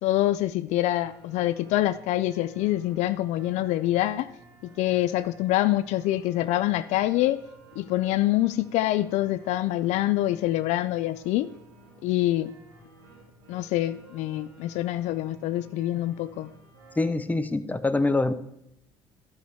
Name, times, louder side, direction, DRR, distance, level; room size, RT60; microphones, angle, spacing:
voice 1, 0.0-4.3 4.6-7.4 7.8-11.5 12.0-12.5 13.5-16.5, left 15 dB, 65° left, 13 dB, 0.4 m, -25 dB
sound 1, 0.8-17.1, right 2 dB, 90° right, 1.9 m, -53 dB
voice 2, 17.0-18.3, left 2 dB, 10° left, 11 dB, 0.7 m, -24 dB
12.0 x 6.4 x 3.5 m, 0.79 s
hypercardioid pair, 65°, 13 cm